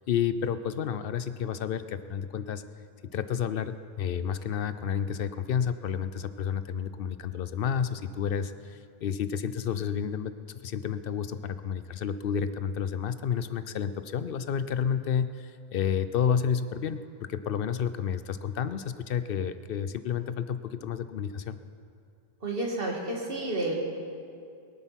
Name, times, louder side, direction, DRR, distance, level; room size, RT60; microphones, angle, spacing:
voice 1, 0.1-2.6 3.1-10.3 10.6-21.6, left 7 dB, 65° left, 13 dB, 0.7 m, -30 dB
voice 2, 22.4-23.7, right 2 dB, 65° right, -1 dB, 2.2 m, -30 dB
22.5 x 8.0 x 5.9 m, 2.4 s
omnidirectional pair, 1.0 m